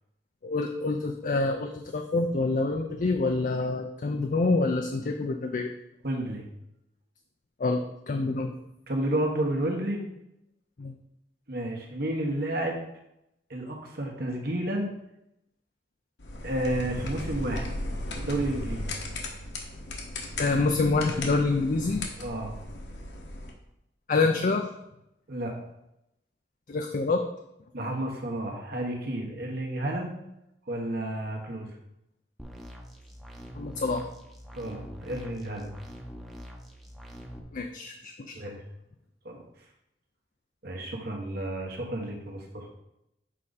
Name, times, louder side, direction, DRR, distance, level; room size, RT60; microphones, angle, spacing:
voice 1, 0.4-5.7 7.6-7.8 8.1-8.5 10.8-10.9 20.4-22.1 24.1-24.7 26.7-27.2 33.6-34.0 37.5-38.3, left 3 dB, 50° left, 4 dB, 0.5 m, -26 dB
voice 2, 6.0-6.5 8.9-10.0 11.5-12.8 13.5-14.9 16.4-17.7 18.1-19.0 22.2-22.5 25.3-25.5 27.7-30.1 30.7-31.7 34.5-35.7 38.3-38.6 39.2-39.4 40.6-42.7, right 1 dB, 60° right, 1 dB, 1.5 m, -31 dB
sound 1, 16.2-23.5, left 1 dB, 70° left, 1.3 m, -36 dB
sound 2, 32.4-37.4, equal, ahead, 0.8 m, -44 dB
7.4 x 5.0 x 4.1 m, 0.85 s
head